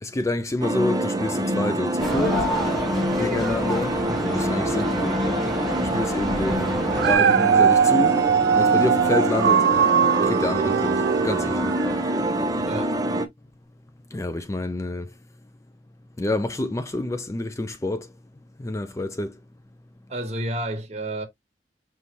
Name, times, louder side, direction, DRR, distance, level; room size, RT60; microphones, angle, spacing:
voice 1, 0.0-2.5 3.2-5.3 5.8-8.2 8.5-9.7 10.2-11.7 14.1-15.1 16.2-18.1 18.6-19.4, left 2 dB, 15° left, 0.4 m, -28 dB
sound 1, 0.6-13.3, right 1 dB, 20° right, 0.6 m, -26 dB
sound 2, 2.0-7.2, left 1 dB, ahead, 1.4 m, -29 dB
Dog, 6.8-12.1 12.7-12.8, right 7 dB, 65° right, 0.3 m, -20 dB
voice 2, 12.6-13.0 20.1-21.3, right 1 dB, 40° right, 1.3 m, -30 dB
5.3 x 3.2 x 2.9 m
head